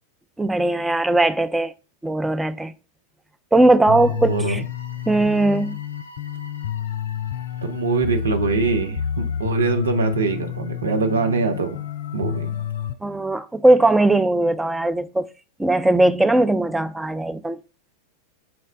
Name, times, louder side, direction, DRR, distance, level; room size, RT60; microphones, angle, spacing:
voice 1, 0.4-1.7 2.0-2.7 3.5-4.6 5.1-5.8 13.0-15.3 15.6-17.6, right 2 dB, 5° right, 0.3 m, -19 dB
sound 1, 3.9-12.9, left 9 dB, 65° left, 0.4 m, -29 dB
voice 2, 4.3-4.6 7.6-11.8 12.1-12.6, right 4 dB, 70° right, 0.6 m, -23 dB
5.8 x 2.1 x 3.6 m
figure-of-eight pair, 90°, 0 cm